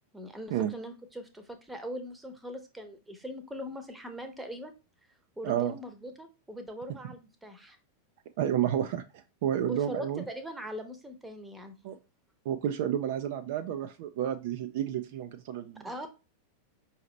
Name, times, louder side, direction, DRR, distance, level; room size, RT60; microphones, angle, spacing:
voice 1, 0.1-4.7 5.4-7.8 9.7-11.7 15.8-16.1, equal, 10° right, 6 dB, 0.8 m, -41 dB
voice 2, 5.4-5.7 8.4-10.2 11.8-12.0 12.5-16.1, right 10 dB, 50° right, 8 dB, 0.4 m, -31 dB
5.5 x 2.8 x 3.2 m, 0.30 s
figure-of-eight pair, 90°, 0 cm